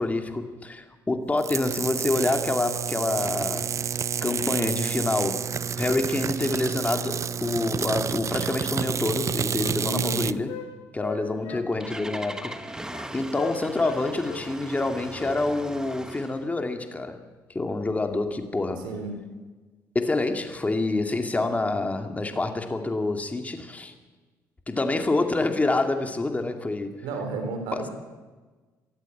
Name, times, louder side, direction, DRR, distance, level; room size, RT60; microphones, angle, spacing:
voice 1, 0.0-3.7 4.2-5.5 5.8-10.5 10.9-12.6 13.1-17.2 17.5-18.9 19.9-23.9 24.7-27.0 27.7-27.8, left 2 dB, 20° left, 5 dB, 2.4 m, -27 dB
sound 1, 1.4-10.4, right 7 dB, 45° right, 0.6 m, -29 dB
Wind instrument woodwind instrument, 8.7-10.7 11.0-12.1 12.4-13.1 13.3-14.0 14.2-14.4 14.7-15.4 15.6-15.8, left 9 dB, 85° left, 6.5 m, -39 dB
voice 2, 9.8-10.3 18.8-19.2 27.0-27.9, right 3 dB, 85° right, 5 dB, 3.9 m, -32 dB
Engine starting, 11.3-16.5, right 1 dB, 10° right, 1.4 m, -39 dB
23.0 x 13.5 x 8.6 m, 1.3 s
supercardioid pair, 80°, 8 cm